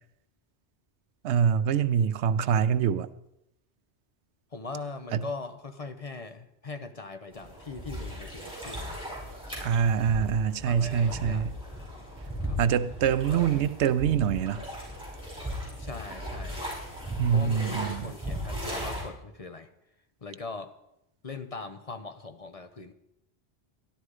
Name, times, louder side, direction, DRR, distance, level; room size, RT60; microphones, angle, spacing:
voice 1, 1.2-3.1 5.1-5.2 9.6-11.5 12.6-14.6 17.2-18.1, right 7 dB, 90° right, 0.9 m, -25 dB
voice 2, 4.5-9.0 9.5-9.8 10.6-11.4 12.4-12.6 15.8-16.6 17.3-19.7 20.2-20.7 21.2-22.9, left 3 dB, 35° left, 0.8 m, -40 dB
sound 1, 7.3-19.0, equal, 5° right, 5.8 m, -37 dB
13.0 x 12.0 x 4.8 m
omnidirectional pair, 1.1 m